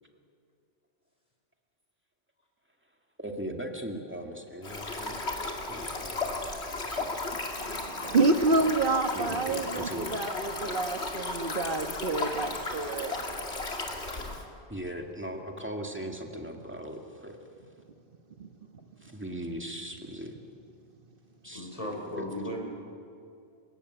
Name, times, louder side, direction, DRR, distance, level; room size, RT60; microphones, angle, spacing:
voice 1, 3.2-6.6 6.8-7.4 8.5-8.6 9.1-10.2 14.7-17.4 19.0-20.4 21.4-21.7, right 1 dB, 10° right, 2 dB, 2.3 m, -39 dB
Stream, 4.6-14.4, left 2 dB, 75° left, 2.7 m, -35 dB
voice 2, 7.7-13.2 18.4-18.5, right 3 dB, 55° right, 7 dB, 1.5 m, -28 dB
voice 3, 21.5-22.6, equal, 30° left, 0 dB, 5.3 m, -36 dB
30.0 x 18.0 x 8.2 m, 2.4 s
omnidirectional pair, 1.1 m